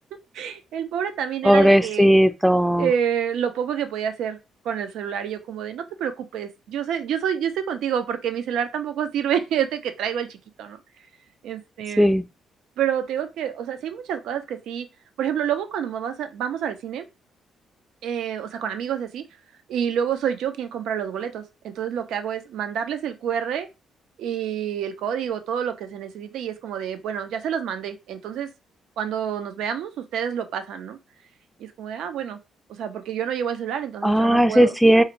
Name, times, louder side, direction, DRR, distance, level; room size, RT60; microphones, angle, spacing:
voice 1, 0.3-2.1 2.8-4.4 4.6-10.8 11.4-12.1 12.8-14.9 15.2-17.1 18.0-19.2 19.7-23.7 24.2-28.5 29.0-31.0 31.6-32.4 32.7-34.7, right 8 dB, 80° right, 0.4 m, -28 dB
voice 2, 1.4-2.9 12.0-12.2 34.0-35.0, equal, 5° right, 0.3 m, -16 dB
2.5 x 2.4 x 2.9 m
cardioid pair, 90°, 0 cm